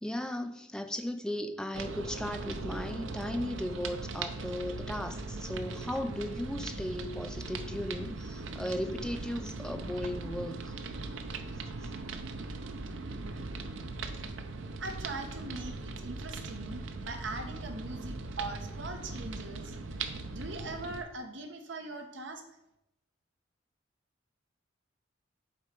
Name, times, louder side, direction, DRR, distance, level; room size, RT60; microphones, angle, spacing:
voice 1, 0.0-10.8, left 1 dB, 5° left, 6 dB, 0.4 m, -36 dB
sound 1, 1.7-21.0, right 3 dB, 90° right, 0.6 m, -39 dB
voice 2, 14.8-19.7 20.3-22.4, right 2 dB, 75° right, 5 dB, 1.0 m, -41 dB
7.2 x 4.3 x 5.2 m, 0.89 s
head